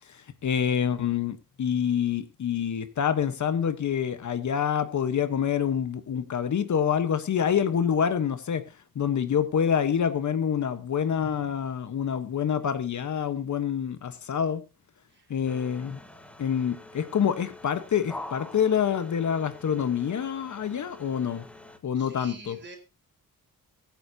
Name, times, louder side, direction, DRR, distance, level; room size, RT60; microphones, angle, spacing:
voice 1, 0.1-8.6 8.9-14.6 15.3-16.0 16.4-21.4 21.8-22.6, left 8 dB, 55° left, 10 dB, 1.2 m, -27 dB
sound 1, 15.5-21.8, left 2 dB, 5° left, 1.3 m, -45 dB
voice 2, 21.9-22.8, right 3 dB, 30° right, 4 dB, 4.2 m, -47 dB
23.0 x 9.4 x 2.8 m, 0.29 s
wide cardioid pair, 175°, 35 cm